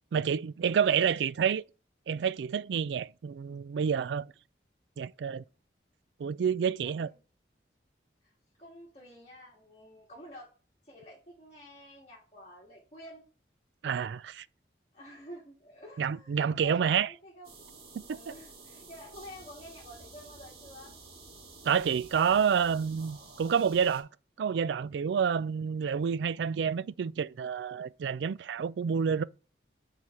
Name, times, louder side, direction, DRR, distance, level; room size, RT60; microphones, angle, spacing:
voice 1, 0.1-1.6 2.1-4.3 5.0-5.4 6.2-7.1 13.8-14.5 16.0-17.1 18.1-18.2 21.6-24.1 24.4-29.2, right 7 dB, 75° right, 0.3 m, -28 dB
voice 2, 6.8-7.1 8.6-10.5 10.8-13.2 14.9-17.5 18.1-20.9 25.1-25.2, equal, 35° left, 1.7 m, -50 dB
sound 1, 17.4-24.0, right 3 dB, 55° right, 2.0 m, -51 dB
7.5 x 4.1 x 4.8 m
head